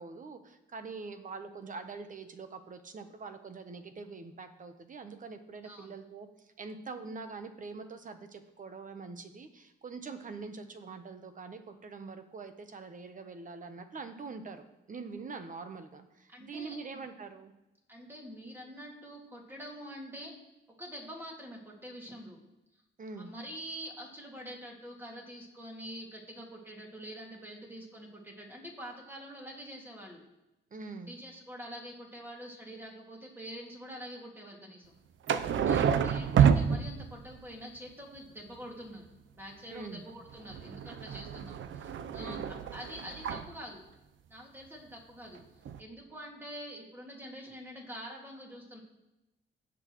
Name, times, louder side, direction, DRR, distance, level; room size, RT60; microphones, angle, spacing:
voice 1, 0.0-17.5 23.0-23.3 30.7-31.1 35.5-36.0 39.7-40.0 42.2-42.5, right 4 dB, 40° right, 8 dB, 1.0 m, -44 dB
voice 2, 16.3-17.0 17.9-20.3 20.8-22.4 23.2-30.2 31.1-34.9 35.6-39.1 39.4-43.8 44.3-45.4 45.8-48.8, equal, 10° right, -1 dB, 2.1 m, -45 dB
sound 1, 35.3-37.4 40.3-43.5 45.3-45.4 45.7-45.8, right 8 dB, 75° right, 0.6 m, -28 dB
17.0 x 6.2 x 3.1 m, 0.95 s
cardioid pair, 125°, 20 cm